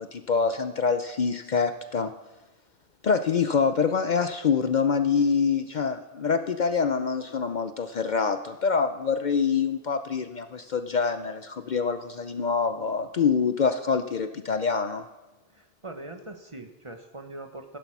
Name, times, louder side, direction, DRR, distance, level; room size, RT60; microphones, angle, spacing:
voice 1, 0.0-2.1 3.0-15.0, left 5 dB, 50° left, 9 dB, 0.7 m, -25 dB
voice 2, 15.5-17.8, right 2 dB, 30° right, 5 dB, 1.2 m, -41 dB
15.0 x 11.0 x 6.0 m, 1.1 s
omnidirectional pair, 1.1 m